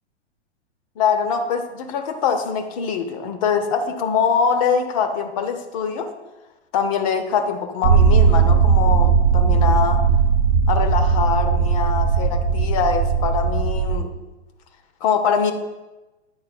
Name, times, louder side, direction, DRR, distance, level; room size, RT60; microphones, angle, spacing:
voice 1, 1.0-6.1 6.7-10.0 10.7-14.1 15.0-15.5, left 6 dB, 30° left, 7 dB, 0.5 m, -23 dB
sound 1, 7.8-14.0, right 6 dB, 60° right, 0.5 m, -17 dB
9.5 x 4.1 x 2.6 m, 1.1 s
figure-of-eight pair, 105°, 34 cm